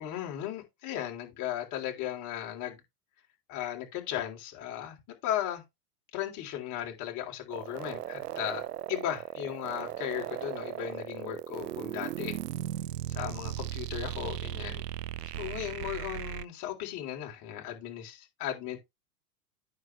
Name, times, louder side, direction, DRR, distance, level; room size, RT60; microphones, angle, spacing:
voice 1, 0.0-2.8 3.5-5.6 6.1-8.6 8.9-12.3 13.2-14.9 15.4-18.8, left 11 dB, 40° left, 3.5 m, -36 dB
sound 1, 7.5-16.4, right 13 dB, 90° right, 0.6 m, -37 dB
9.4 x 6.3 x 3.3 m
hypercardioid pair, 115°, 46 cm